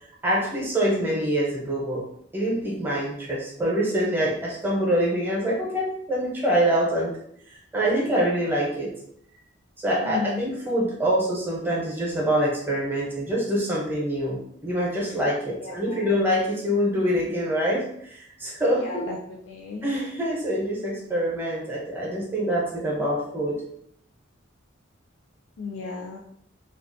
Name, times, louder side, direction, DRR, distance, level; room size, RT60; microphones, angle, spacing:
voice 1, 0.2-2.0 2.3-7.2 7.5-8.9 9.8-19.1 19.8-23.6, equal, 10° right, -4 dB, 0.6 m, -25 dB
voice 2, 10.0-10.4 15.6-16.1 18.8-19.2 19.5-19.9 25.6-26.2, left 4 dB, 85° left, -1 dB, 0.4 m, -34 dB
2.4 x 2.3 x 2.5 m, 0.69 s
head